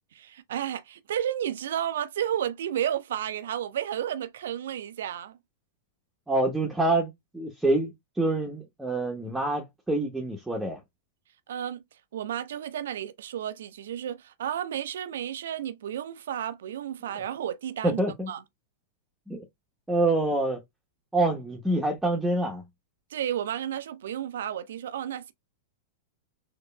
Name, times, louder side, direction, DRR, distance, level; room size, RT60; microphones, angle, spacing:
voice 1, 0.1-5.4 11.5-11.8 12.1-18.0 18.3-18.4 23.1-25.3, right 10 dB, 65° right, 0.6 m, -32 dB
voice 2, 6.3-10.8 17.8-18.3 19.3-19.4 19.9-20.6 21.1-22.6, right 2 dB, 5° right, 1.0 m, -26 dB
6.5 x 2.9 x 2.2 m
figure-of-eight pair, 95°, 0 cm